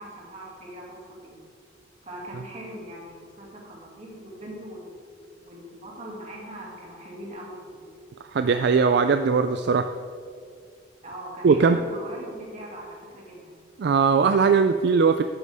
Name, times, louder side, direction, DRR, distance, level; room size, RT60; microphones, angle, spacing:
voice 1, 0.0-1.4 2.0-5.0 5.4-7.9 11.0-13.6, right 1 dB, 35° right, -4 dB, 2.3 m, -41 dB
voice 2, 8.3-9.9 11.4-11.8 13.8-15.2, right 5 dB, 60° right, 9 dB, 0.4 m, -20 dB
12.5 x 8.4 x 3.5 m, 2.1 s
head